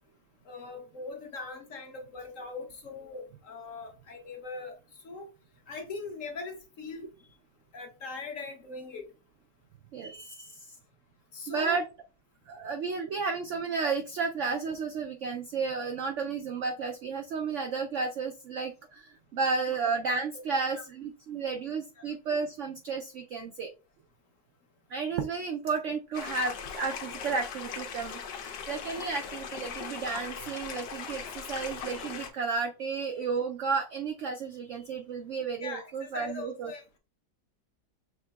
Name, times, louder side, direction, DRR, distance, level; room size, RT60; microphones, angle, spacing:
voice 1, 0.5-4.8 5.0-5.3 5.7-7.1 7.7-9.0 11.3-11.8 20.5-20.8 22.0-22.1 35.6-37.0, left 3 dB, 55° left, 1.0 m, -41 dB
voice 2, 9.9-10.6 11.5-11.9 12.5-23.7 24.9-36.7, right 5 dB, 75° right, 0.6 m, -32 dB
sound 1, 26.1-32.3, left 6 dB, 90° left, 1.5 m, -39 dB
6.2 x 3.7 x 2.3 m
omnidirectional pair, 1.8 m